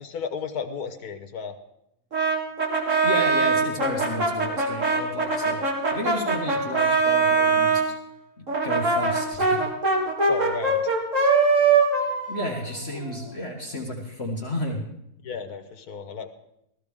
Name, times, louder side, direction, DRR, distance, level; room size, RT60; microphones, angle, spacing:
voice 1, 0.0-1.5 10.3-10.9 15.2-16.3, left 6 dB, 85° left, 7 dB, 1.6 m, -34 dB
Brass instrument, 2.1-7.9 8.5-13.2, right 4 dB, 55° right, 2.2 m, -22 dB
voice 2, 3.0-8.0 8.4-9.7 12.3-14.9, left 1 dB, 45° left, 0 dB, 1.7 m, -32 dB
15.0 x 14.5 x 3.6 m, 0.80 s
omnidirectional pair, 1.6 m